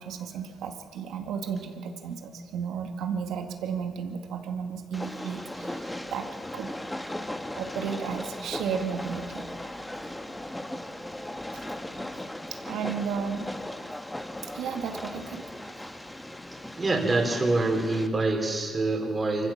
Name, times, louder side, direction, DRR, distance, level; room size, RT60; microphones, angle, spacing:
voice 1, 0.0-6.3 6.5-6.7 7.6-9.5 11.5-11.6 12.7-13.5 14.5-15.5, right 6 dB, 85° right, 5 dB, 1.9 m, -33 dB
Train, 4.9-18.1, left 1 dB, 10° left, 1.2 m, -37 dB
voice 2, 16.8-19.5, right 2 dB, 30° right, 2 dB, 3.9 m, -25 dB
25.0 x 14.5 x 7.3 m, 2.1 s
cardioid pair, 90°, 0 cm